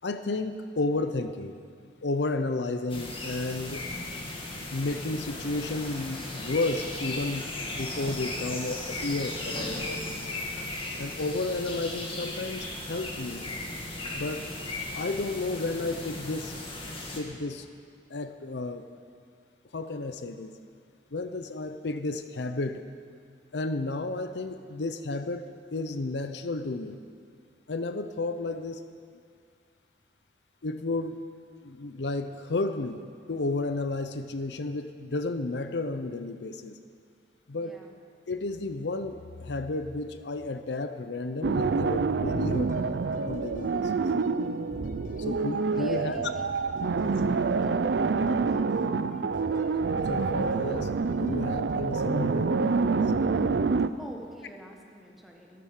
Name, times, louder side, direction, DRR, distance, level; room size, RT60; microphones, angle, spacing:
voice 1, 0.0-1.6 2.0-3.9 4.7-10.3 11.0-13.4 14.1-14.5 14.9-16.5 17.2-17.7 18.1-18.9 19.7-20.5 21.1-22.9 23.5-27.0 27.7-28.8 30.6-31.2 31.6-33.0 33.3-36.8 37.5-37.8 38.3-42.9 43.2-44.0 45.2-46.2 47.0-47.1 49.9-53.0, left 2 dB, 75° left, 9 dB, 0.7 m, -32 dB
sound 1, 2.9-17.2, left 2 dB, 30° left, 2.1 m, -36 dB
voice 2, 37.6-37.9 45.0-45.4 45.8-46.6 54.0-55.6, equal, ahead, 0 dB, 1.6 m, -46 dB
sound 2, 41.4-53.9, right 4 dB, 70° right, 0.5 m, -27 dB
sound 3, 42.1-52.0, left 1 dB, 50° left, 1.5 m, -52 dB
13.5 x 13.0 x 6.5 m, 2.2 s
head